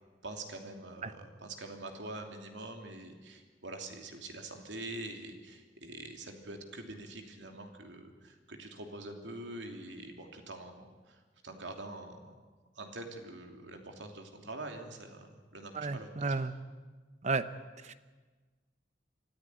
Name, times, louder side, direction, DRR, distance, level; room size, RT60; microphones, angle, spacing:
voice 1, 0.2-12.3 12.7-16.5, right 2 dB, 80° right, 4 dB, 3.0 m, -45 dB
voice 2, 15.7-16.5 17.2-17.5 17.8-17.9, right 4 dB, 40° right, 12 dB, 0.8 m, -32 dB
25.0 x 14.0 x 9.6 m, 1.4 s
head